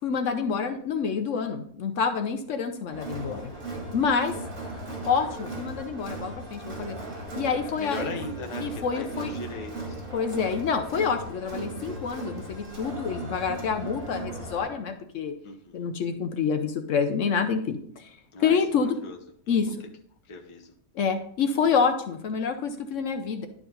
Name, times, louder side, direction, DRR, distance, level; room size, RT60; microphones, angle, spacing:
voice 1, 0.0-3.5 3.9-4.3 5.0-7.0 7.4-8.1 8.6-9.3 10.1-15.3 15.7-19.0 19.5-19.7 20.9-23.5, left 6 dB, 65° left, 7 dB, 1.0 m, -27 dB
Crowd, 2.9-14.7, right 2 dB, 70° right, 2.7 m, -37 dB
voice 2, 7.8-10.0 15.4-15.9 18.3-19.2 19.5-19.8 20.2-20.7, left 3 dB, 25° left, 2 dB, 0.8 m, -39 dB
11.0 x 4.9 x 3.8 m, 0.63 s
omnidirectional pair, 1.5 m